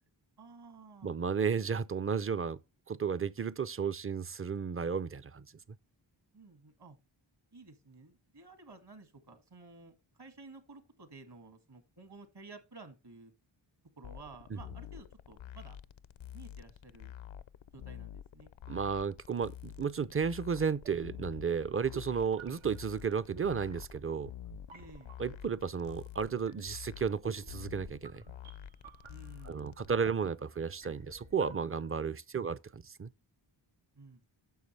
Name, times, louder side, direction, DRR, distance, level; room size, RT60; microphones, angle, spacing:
voice 1, 0.4-1.2 6.3-7.0 7.5-13.3 14.0-15.8 16.3-17.1 17.7-18.5 24.7-25.1 29.1-30.1 32.3-32.5 34.0-34.3, right 3 dB, 55° right, 2.1 m, -53 dB
voice 2, 1.0-2.6 2.9-5.5 18.7-24.3 25.2-28.2 29.4-33.1, right 6 dB, 30° right, 0.5 m, -33 dB
sound 1, 14.0-29.9, left 10 dB, 70° left, 0.6 m, -48 dB
sound 2, 20.0-32.0, right 5 dB, 85° right, 1.3 m, -54 dB
9.4 x 6.6 x 3.2 m
wide cardioid pair, 60°, 47 cm